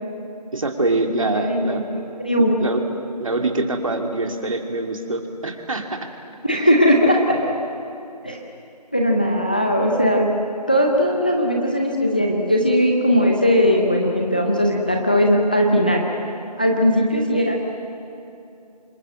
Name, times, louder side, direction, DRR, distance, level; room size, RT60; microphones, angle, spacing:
voice 1, 0.5-1.8 2.4-2.9 3.2-6.0, right 2 dB, 50° right, 4 dB, 2.5 m, -24 dB
voice 2, 1.2-1.8 2.2-2.5 6.4-7.5 8.2-8.4 8.9-10.3 10.7-16.0 16.6-17.6, equal, 15° left, 1 dB, 0.7 m, -18 dB
26.5 x 21.5 x 7.7 m, 2.7 s
figure-of-eight pair, 170°, 21 cm